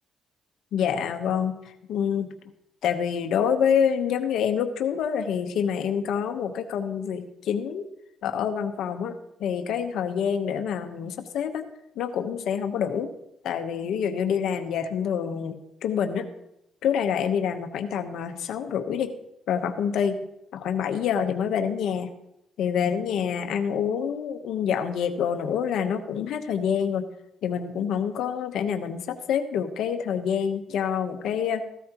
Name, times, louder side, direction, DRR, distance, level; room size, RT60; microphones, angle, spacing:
voice 1, 0.7-1.6 1.9-2.3 2.8-7.8 8.2-9.1 9.4-11.7 12.0-13.1 13.4-16.3 16.8-19.1 19.5-20.2 20.5-22.1 22.6-27.0 27.4-31.6, left 7 dB, 80° left, 7 dB, 1.0 m, -27 dB
15.5 x 12.5 x 3.0 m, 0.81 s
cardioid pair, 90°, 0 cm